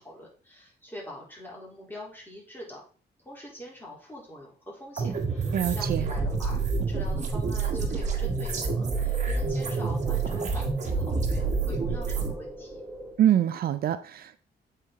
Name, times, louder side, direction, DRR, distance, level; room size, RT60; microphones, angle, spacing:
voice 1, 0.0-2.8 3.2-6.6 6.9-12.8, left 1 dB, 10° left, -4 dB, 3.1 m, -44 dB
sound 1, 5.0-12.3, right 4 dB, 45° right, 1.4 m, -28 dB
sound 2, 5.3-13.1, equal, 5° right, 3.3 m, -43 dB
voice 2, 5.5-6.1 13.2-14.4, right 11 dB, 65° right, 12 dB, 0.4 m, -25 dB
8.1 x 4.4 x 3.6 m, 0.42 s
cardioid pair, 115°, 17 cm